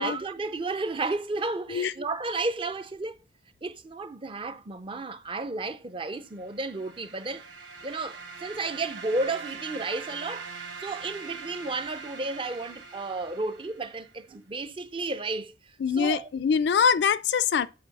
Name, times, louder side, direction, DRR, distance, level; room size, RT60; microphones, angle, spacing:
voice 1, 0.0-3.2 3.6-7.5 7.8-16.3, right 3 dB, 30° right, 0.5 m, -33 dB
sound 1, 6.4-14.1, right 5 dB, 70° right, 1.3 m, -43 dB
voice 2, 15.8-17.7, left 6 dB, 65° left, 0.4 m, -24 dB
7.8 x 4.5 x 4.1 m
head